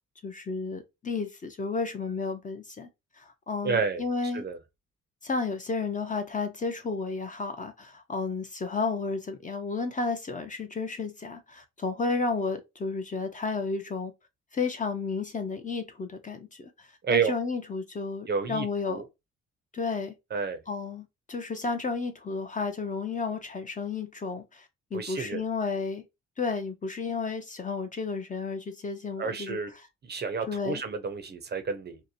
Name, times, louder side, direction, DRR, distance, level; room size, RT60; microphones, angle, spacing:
voice 1, 0.2-2.9 3.2-4.4 5.2-14.1 14.5-19.0 19.7-20.1 20.7-26.0 26.4-29.9 30.5-30.8, left 4 dB, 25° left, 0.5 m, -32 dB
voice 2, 3.6-4.0 4.3-4.6 17.0-17.3 18.3-19.0 20.3-20.6 24.9-25.4 29.2-29.7 30.0-32.0, right 5 dB, 35° right, 0.5 m, -30 dB
2.7 x 2.1 x 2.4 m
cardioid pair, 90°, 30 cm